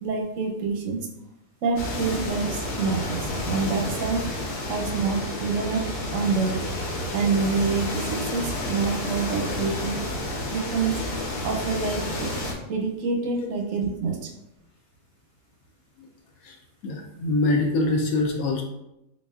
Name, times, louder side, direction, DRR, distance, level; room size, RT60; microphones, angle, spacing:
voice 1, 0.0-1.1 1.6-4.3 4.7-6.7 7.1-10.0 10.5-11.0 11.4-14.3, right 4 dB, 65° right, 1 dB, 0.9 m, -27 dB
sound 1, 1.8-12.5, left 1 dB, 85° left, 1.4 m, -30 dB
voice 2, 16.8-18.6, left 2 dB, 70° left, 1 dB, 1.0 m, -24 dB
4.1 x 3.9 x 2.3 m, 0.87 s
omnidirectional pair, 1.7 m